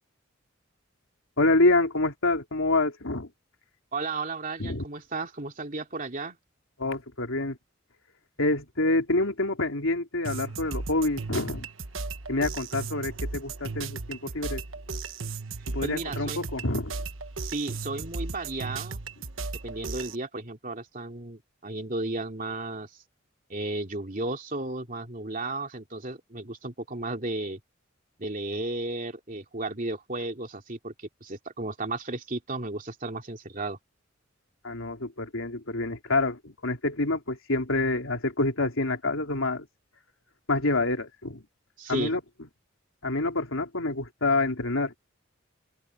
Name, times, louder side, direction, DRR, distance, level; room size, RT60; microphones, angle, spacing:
voice 1, 1.4-3.3 4.6-4.8 6.8-7.6 8.4-11.7 12.3-14.6 15.7-17.0 34.6-39.7 40.5-41.4 41.9-42.2 43.0-45.1, left 2 dB, 90° left, 3.4 m, -27 dB
voice 2, 3.9-6.4 15.8-16.5 17.4-19.0 19.6-22.9 23.5-27.6 28.2-33.8 41.8-42.1, right 2 dB, 40° right, 2.9 m, -34 dB
sound 1, 10.2-20.2, right 4 dB, 80° right, 1.2 m, -36 dB
open air
head